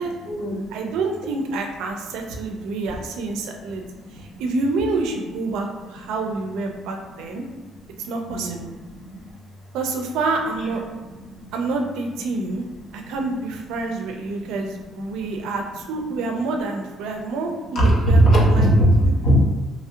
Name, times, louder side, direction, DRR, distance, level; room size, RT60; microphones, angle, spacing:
voice 1, 0.7-3.8 4.1-7.4 8.0-8.7 9.7-11.1 11.5-12.6 12.9-18.2 18.5-18.7, right 3 dB, 90° right, 2 dB, 0.4 m, -27 dB
voice 2, 17.7-19.4, right 1 dB, 50° left, -4 dB, 0.7 m, -17 dB
2.9 x 2.8 x 2.5 m, 1.2 s
cardioid pair, 170°, 0 cm